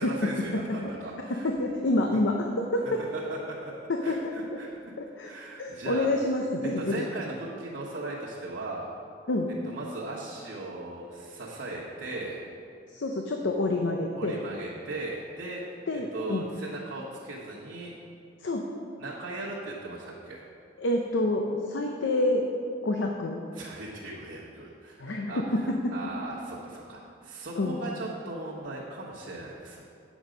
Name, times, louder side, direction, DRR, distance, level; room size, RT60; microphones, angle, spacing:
voice 1, 0.0-1.5 3.1-3.7 4.0-4.7 5.2-6.1 6.8-8.9 9.6-12.4 14.2-17.9 19.0-20.4 23.5-29.8, right 2 dB, 65° right, -8 dB, 1.2 m, -38 dB
voice 2, 1.3-3.0 3.9-4.3 5.2-5.3 5.6-7.0 9.3-9.5 12.9-14.4 15.9-16.5 18.4-18.6 20.8-22.5 22.8-23.4 25.0-25.6 27.6-27.8, left 2 dB, 85° left, 2 dB, 0.7 m, -27 dB
8.9 x 6.2 x 5.1 m, 2.5 s
head